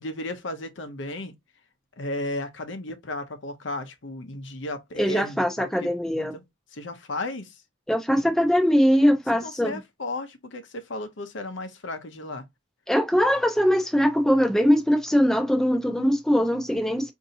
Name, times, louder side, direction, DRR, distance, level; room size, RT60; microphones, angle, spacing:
voice 1, 0.0-1.3 2.0-6.4 6.7-7.6 9.4-12.4, left 2 dB, 70° left, 0.7 m, -34 dB
voice 2, 5.0-6.3 7.9-9.8 12.9-17.1, equal, ahead, 0.6 m, -21 dB
5.0 x 2.7 x 2.7 m
head